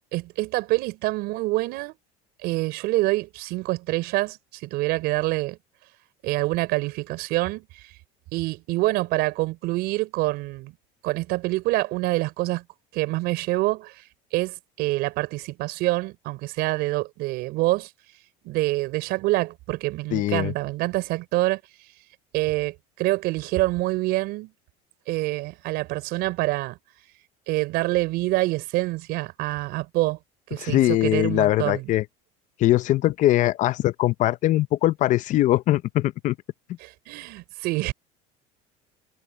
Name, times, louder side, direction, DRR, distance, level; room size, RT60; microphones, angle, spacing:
voice 1, 0.1-1.9 2.4-5.6 6.2-7.7 8.3-10.7 11.0-12.6 12.9-14.0 14.3-17.9 18.4-21.6 22.3-24.5 25.1-26.8 27.5-30.2 30.5-31.9 36.8-37.9, right 20 dB, 65° right, 4.9 m, -26 dB
voice 2, 20.1-20.5 30.6-32.0 32.6-36.3, left 15 dB, 45° left, 0.6 m, -21 dB
cardioid pair, 135°, 18 cm